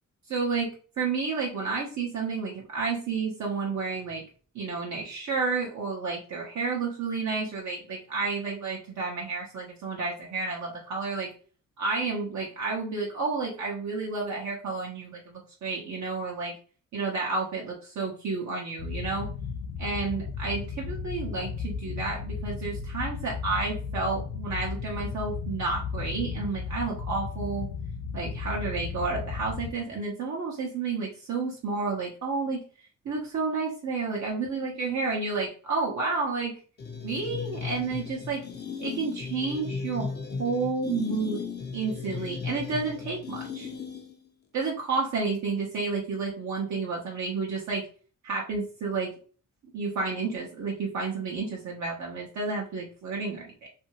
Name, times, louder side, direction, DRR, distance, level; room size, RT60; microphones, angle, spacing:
voice 1, 0.3-4.2 4.5-11.3 11.8-16.5 16.9-19.3 19.8-27.7 28.1-32.6 33.0-36.6 37.0-38.4 38.8-40.1 40.4-41.4 41.7-43.7 44.5-47.9 48.2-49.1 49.7-53.7, right 4 dB, 60° right, -2 dB, 0.8 m, -31 dB
sound 1, 18.8-29.7, left 5 dB, 85° left, 0.5 m, -35 dB
sound 2, 36.8-44.3, left 5 dB, 35° left, 0.5 m, -36 dB
2.6 x 2.6 x 2.9 m, 0.40 s
wide cardioid pair, 140°, 32 cm